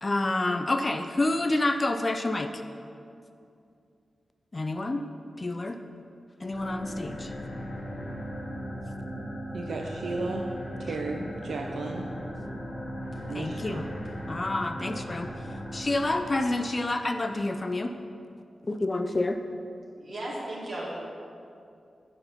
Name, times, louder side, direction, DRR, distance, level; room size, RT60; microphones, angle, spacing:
voice 1, 0.0-2.6 4.5-5.0 5.4-5.8 6.4-7.3 12.1-12.3 13.3-13.8 14.3-15.5 15.7-17.9 18.7-19.4, left 2 dB, 25° left, 7 dB, 0.3 m, -28 dB
sound 1, 6.4-16.9, equal, 45° left, 1.1 m, -38 dB
voice 2, 9.5-10.5 10.8-12.1 13.3-13.8, right 3 dB, 75° right, 1 dB, 0.5 m, -34 dB
voice 3, 20.0-20.8, right 1 dB, 45° right, -6 dB, 2.3 m, -35 dB
9.0 x 5.5 x 5.6 m, 2.5 s
wide cardioid pair, 175°, 0 cm